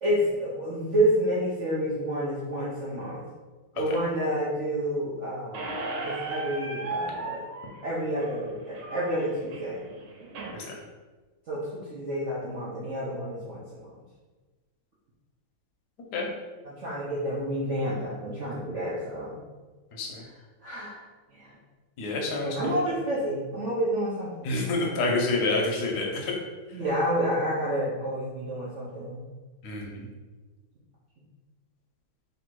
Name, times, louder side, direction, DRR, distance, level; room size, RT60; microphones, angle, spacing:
voice 1, 0.0-3.2 3.7-5.7 6.0-7.4 7.8-9.8 11.5-13.9 16.6-19.4 20.6-21.0 21.3-21.5 22.4-25.3 26.7-29.3, right 1 dB, 70° right, -7 dB, 0.7 m, -29 dB
Squeak, 5.5-10.5, right 2 dB, 85° right, 1.6 m, -36 dB
voice 2, 22.0-22.8 24.4-26.3 29.6-30.0, left 2 dB, 65° left, 0 dB, 1.2 m, -28 dB
3.4 x 2.6 x 4.5 m, 1.3 s
omnidirectional pair, 2.3 m